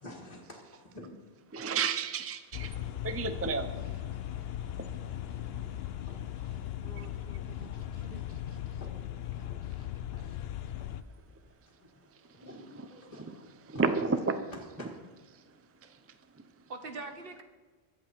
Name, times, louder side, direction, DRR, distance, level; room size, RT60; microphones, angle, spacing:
voice 1, 0.0-1.2 1.6-1.8 2.7-4.1 5.7-6.2 7.9-8.0 8.4-8.5 8.8-10.4 10.6-11.3 11.7-12.0 12.3-13.8 14.5-14.9, left 1 dB, 35° left, -4 dB, 1.9 m, -51 dB
voice 2, 1.5-2.7 3.0-3.7 13.3-13.4 13.7-14.3, right 5 dB, 15° right, 9 dB, 0.5 m, -30 dB
sound 1, 2.5-11.0, left 11 dB, 70° left, 0.8 m, -38 dB
voice 3, 6.8-7.8 8.0-8.2 14.1-14.3 16.7-17.4, right 3 dB, 60° right, 7 dB, 1.2 m, -45 dB
22.5 x 7.7 x 4.6 m, 1.4 s
omnidirectional pair, 1.1 m